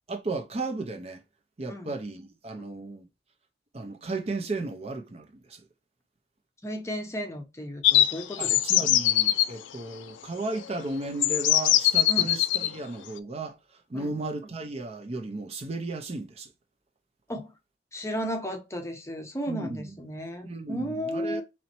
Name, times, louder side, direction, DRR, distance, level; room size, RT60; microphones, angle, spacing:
voice 1, 0.1-1.2 1.6-3.1 3.7-5.7 8.4-16.5 19.5-19.8 20.4-21.4, right 2 dB, 35° right, 0.5 m, -35 dB
voice 2, 6.6-8.9 12.1-12.3 13.9-14.2 17.3-17.5 17.9-21.4, equal, 15° left, 0.7 m, -34 dB
sound 1, 7.8-9.5 10.6-10.7 11.2-12.7, left 13 dB, 85° left, 0.4 m, -22 dB
4.0 x 3.0 x 2.9 m
head